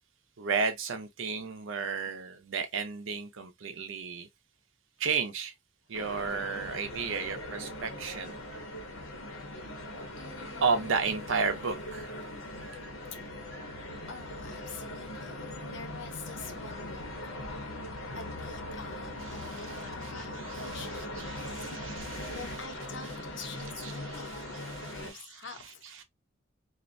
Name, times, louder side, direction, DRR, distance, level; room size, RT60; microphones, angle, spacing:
voice 1, 0.4-4.3 5.0-5.5 5.9-8.4 10.6-12.2 19.2-22.7 23.0-26.0, right 5 dB, 75° right, 0.6 m, -34 dB
sound 1, 5.9-25.1, left 1 dB, 90° left, 0.8 m, -40 dB
voice 2, 10.2-10.9 14.0-17.1 18.1-21.6 22.0-25.9, left 5 dB, 65° left, 0.6 m, -47 dB
sound 2, 18.7-23.7, equal, 5° left, 0.4 m, -53 dB
2.4 x 2.1 x 2.5 m
head